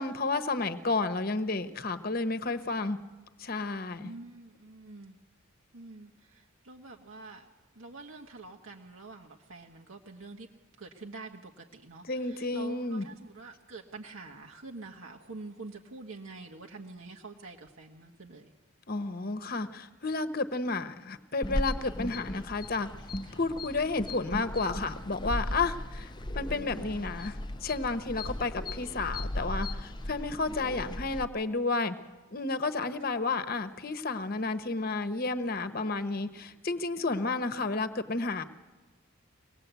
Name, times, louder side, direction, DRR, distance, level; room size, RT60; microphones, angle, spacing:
voice 1, 0.0-3.0 3.4-4.1 12.1-13.1 18.9-22.9 23.3-26.1 26.3-32.0 32.3-38.4, left 3 dB, 45° left, 10 dB, 1.0 m, -31 dB
voice 2, 4.0-5.2 5.7-7.5 7.7-10.5 10.8-18.5 23.2-23.4 26.3-27.1 30.5-30.8 33.0-33.2, right 3 dB, 70° right, 1 dB, 1.4 m, -47 dB
sound 1, 21.4-31.2, left 1 dB, 20° left, 0.6 m, -37 dB
24.0 x 19.0 x 8.2 m, 1.3 s
head